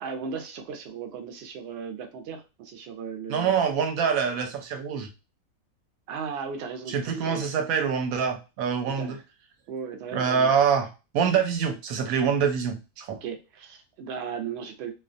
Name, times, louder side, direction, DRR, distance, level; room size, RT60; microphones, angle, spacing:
voice 1, 0.0-3.5 6.1-7.4 9.0-9.2 9.7-10.5 13.2-14.9, right 6 dB, 65° right, 4 dB, 0.7 m, -36 dB
voice 2, 3.3-5.1 6.9-9.2 10.1-10.9 11.1-13.2, right 7 dB, 85° right, 6 dB, 1.0 m, -25 dB
2.4 x 2.2 x 2.5 m, 0.29 s
omnidirectional pair, 1.4 m